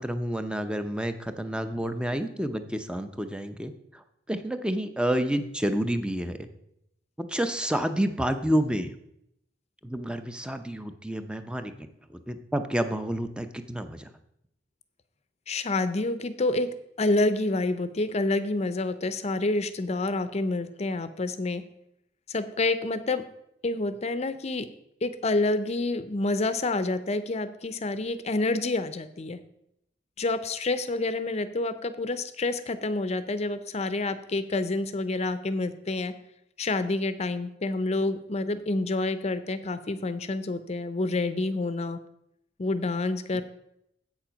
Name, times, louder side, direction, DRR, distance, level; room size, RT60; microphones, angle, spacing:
voice 1, 0.0-4.0 4.3-6.5 7.2-8.9 9.8-11.7 12.1-14.1 43.3-43.4, right 1 dB, 5° right, 9 dB, 0.6 m, -29 dB
voice 2, 15.5-16.7 17.0-21.6 22.3-23.2 23.6-24.7 25.0-29.4 30.2-36.1 36.6-42.0 42.6-43.4, left 2 dB, 35° left, 12 dB, 0.6 m, -28 dB
7.9 x 7.3 x 5.1 m, 0.79 s
head